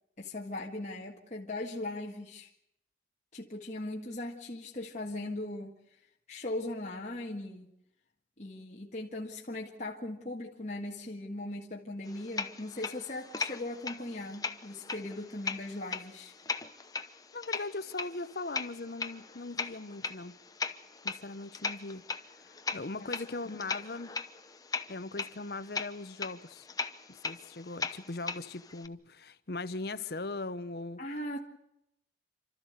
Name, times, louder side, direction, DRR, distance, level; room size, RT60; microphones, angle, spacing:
voice 1, 0.2-2.5 3.3-5.8 6.3-7.7 8.4-16.3 23.0-23.1 31.0-31.4, left 1 dB, 40° left, 1.7 m, -39 dB
sound 1, 12.0-28.9, left 4 dB, 20° left, 0.8 m, -39 dB
voice 2, 17.3-20.4 21.0-22.0 22.4-24.2 24.9-26.7 27.1-31.0, left 3 dB, 55° left, 0.8 m, -39 dB
28.5 x 13.0 x 8.1 m
head